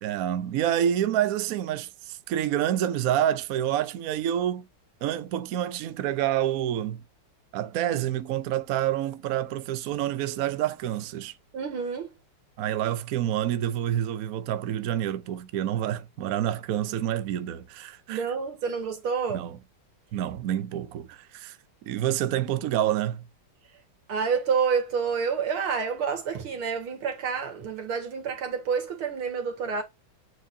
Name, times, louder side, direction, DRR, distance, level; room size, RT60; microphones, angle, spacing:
voice 1, 0.0-4.6 5.0-7.0 7.5-11.3 12.6-18.2 19.3-19.6 20.1-21.6 21.8-23.2, right 11 dB, 70° right, 0.8 m, -28 dB
voice 2, 11.5-12.1 18.1-19.4 24.1-29.8, right 6 dB, 85° right, 2.5 m, -28 dB
8.2 x 4.5 x 2.7 m
omnidirectional pair, 2.2 m